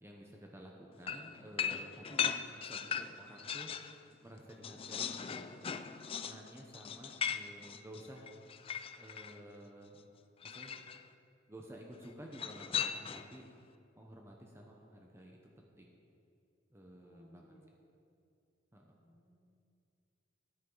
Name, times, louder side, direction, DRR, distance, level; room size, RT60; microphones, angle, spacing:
voice 1, 0.0-3.7 4.2-5.7 6.2-8.3 9.0-10.0 10.4-10.8 11.5-13.5 14.0-16.0 16.7-17.5 18.7-19.0, equal, 15° right, 0 dB, 0.9 m, -52 dB
sound 1, 1.1-4.0 4.3-9.4 10.4-11.0 12.3-13.4, left 7 dB, 30° left, 0.4 m, -39 dB
voice 2, 17.0-17.8 18.9-19.5, equal, 45° left, -5 dB, 3.1 m, -62 dB
13.5 x 9.8 x 4.0 m, 2.6 s
head